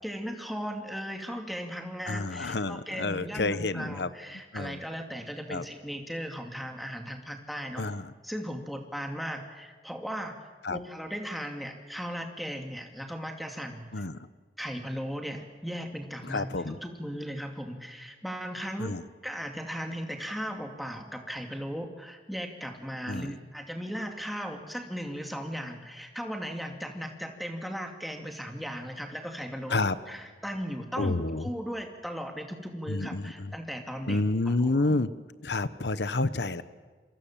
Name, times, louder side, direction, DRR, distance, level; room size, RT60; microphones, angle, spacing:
voice 1, 0.0-7.9 8.2-10.4 10.7-14.0 14.6-18.9 19.2-34.2 34.5-35.0, equal, ahead, 3 dB, 2.4 m, -37 dB
voice 2, 2.1-4.1 4.5-4.8 5.5-5.6 7.8-8.1 10.6-10.8 13.9-14.2 16.2-16.8 18.8-19.0 23.1-23.3 29.7-30.0 31.0-31.5 32.9-33.6 34.1-35.1 35.4-36.6, left 2 dB, 75° left, 14 dB, 1.0 m, -29 dB
27.5 x 23.0 x 7.4 m, 1.4 s
head